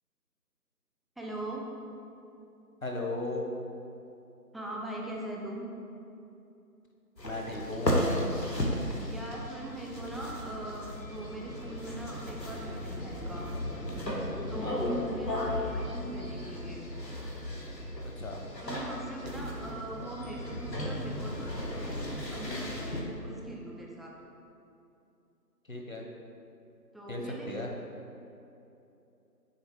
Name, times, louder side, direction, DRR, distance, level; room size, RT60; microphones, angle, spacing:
voice 1, 1.2-1.7 4.5-5.7 9.1-13.5 14.5-16.8 18.6-24.2 26.9-27.5, right 1 dB, ahead, -3 dB, 0.5 m, -41 dB
voice 2, 2.8-3.5 7.2-8.0 14.6-14.9 18.2-18.4 25.7-26.0 27.1-27.7, left 2 dB, 55° left, 0 dB, 1.1 m, -36 dB
sound 1, 7.2-23.0, equal, 90° left, 1.5 m, -35 dB
7.1 x 3.7 x 6.4 m, 2.8 s
figure-of-eight pair, 170°, 49 cm